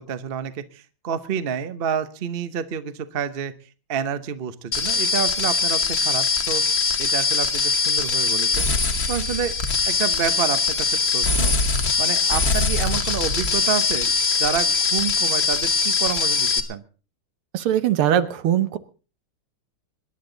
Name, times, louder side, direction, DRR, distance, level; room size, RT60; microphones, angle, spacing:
voice 1, 0.0-3.5 3.9-6.6 7.0-8.7 9.1-9.6 9.9-11.5 12.0-14.1 14.4-16.8, right 8 dB, 45° right, 11 dB, 0.7 m, -28 dB
sound 1, 4.7-16.6, left 4 dB, 35° left, 1.2 m, -22 dB
voice 2, 17.5-18.8, right 10 dB, 90° right, 12 dB, 1.9 m, -21 dB
25.5 x 11.0 x 3.9 m, 0.36 s
omnidirectional pair, 2.3 m